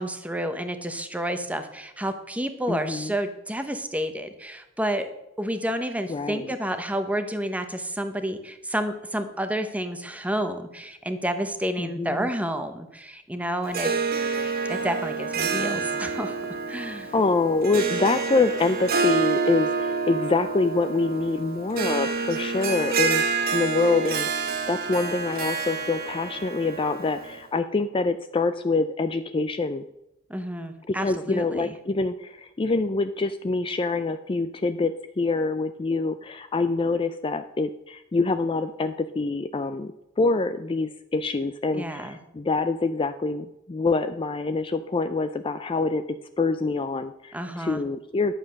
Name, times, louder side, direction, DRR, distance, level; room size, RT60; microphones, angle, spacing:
voice 1, 0.0-5.1 5.4-13.9 14.7-16.4 16.7-17.1 30.3-31.7 41.7-42.2 47.3-47.8, right 1 dB, 5° right, 8 dB, 0.9 m, -30 dB
voice 2, 2.7-3.1 6.1-6.6 11.8-12.3 15.5-16.0 16.8-29.8 30.9-46.0 46.4-48.3, left 3 dB, 25° left, 10 dB, 0.4 m, -26 dB
Harp, 13.6-27.4, right 5 dB, 45° right, 1.2 m, -28 dB
11.0 x 7.4 x 6.3 m, 0.89 s
head